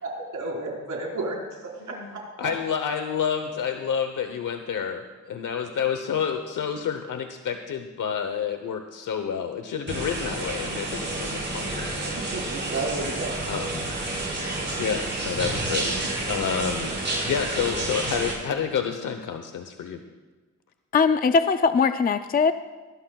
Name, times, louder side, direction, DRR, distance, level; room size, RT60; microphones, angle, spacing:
voice 1, 0.0-1.6 1.9-2.5 11.5-11.8 12.3-13.3, right 2 dB, 70° right, -2 dB, 4.6 m, -32 dB
voice 2, 1.8-2.1 2.4-12.1 13.5-13.8 14.8-15.9 16.3-16.9 17.2-20.0, left 7 dB, 80° left, 6 dB, 0.9 m, -29 dB
sound 1, 9.9-18.3, right 2 dB, 35° right, 5.5 m, -30 dB
voice 3, 20.9-22.5, left 5 dB, 30° left, 10 dB, 0.4 m, -20 dB
19.5 x 17.5 x 2.3 m, 1.3 s
wide cardioid pair, 140°, 31 cm